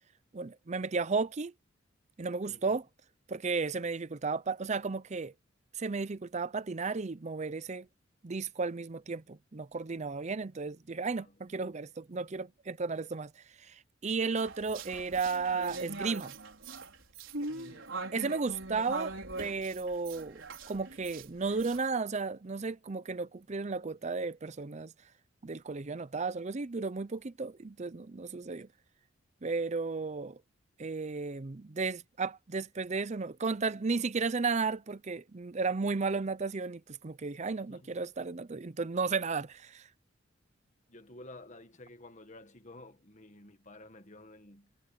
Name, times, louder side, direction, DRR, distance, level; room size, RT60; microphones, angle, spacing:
voice 1, 0.3-1.5 2.2-2.9 3.3-5.3 5.8-7.9 8.2-13.3 13.6-16.3 18.1-20.4 20.7-24.9 25.4-28.7 29.4-30.4 30.8-39.9, right 4 dB, 35° right, 0.5 m, -34 dB
sound 1, 14.4-21.8, right 3 dB, 70° right, 5.3 m, -41 dB
voice 2, 17.5-18.6 37.6-37.9 40.9-44.7, left 2 dB, 35° left, 1.7 m, -52 dB
head